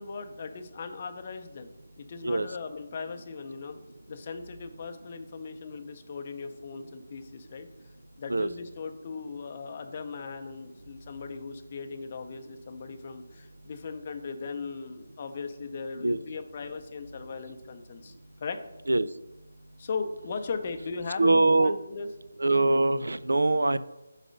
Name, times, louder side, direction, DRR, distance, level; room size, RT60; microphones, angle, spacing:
voice 1, 0.0-3.8 4.1-7.7 8.2-18.6 19.8-22.1, left 5 dB, 35° left, 6 dB, 0.6 m, -38 dB
voice 2, 21.2-21.8 22.4-23.8, right 2 dB, 85° right, 14 dB, 0.3 m, -23 dB
5.3 x 4.1 x 5.2 m, 1.0 s
figure-of-eight pair, 160°, 0 cm